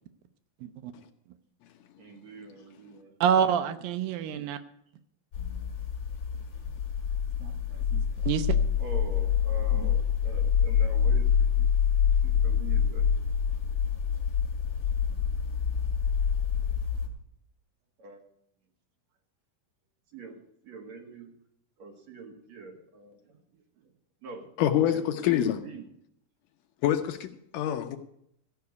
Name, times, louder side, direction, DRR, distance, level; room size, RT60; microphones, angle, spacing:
voice 1, 0.6-0.9 3.2-4.6 7.4-8.5 9.8-9.9, right 8 dB, 80° right, 10 dB, 2.4 m, -28 dB
voice 2, 2.0-3.1 8.8-11.7 12.2-13.1 18.0-18.2 20.1-21.3 21.8-23.9 24.2-24.5 24.8-25.8, right 3 dB, 55° right, 3 dB, 2.6 m, -45 dB
sound 1, 5.3-17.1, left 7 dB, 40° left, 2.6 m, -26 dB
voice 3, 24.6-25.6 26.8-28.0, left 11 dB, 75° left, 7 dB, 2.1 m, -26 dB
14.5 x 5.9 x 9.5 m, 0.74 s
omnidirectional pair, 4.2 m